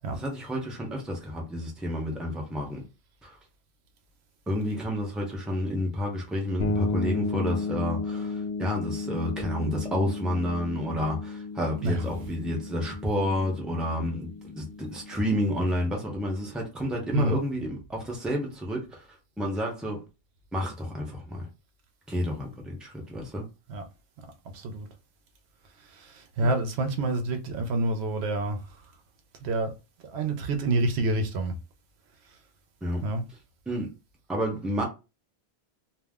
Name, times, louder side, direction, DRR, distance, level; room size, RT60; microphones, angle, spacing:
voice 1, 0.1-2.8 3.2-3.3 4.5-19.0 19.4-20.0 20.5-21.5 22.1-23.5 26.4-26.5 32.8-33.0 33.7-33.9 34.3-34.8, equal, ahead, 0.6 m, -30 dB
sound 1, 6.6-16.2, left 3 dB, 75° left, 1.0 m, -34 dB
voice 2, 24.5-24.9 26.0-28.6 29.4-29.7 30.1-31.5 33.0-33.2, right 2 dB, 90° right, 0.9 m, -27 dB
2.5 x 2.0 x 3.5 m
omnidirectional pair, 1.1 m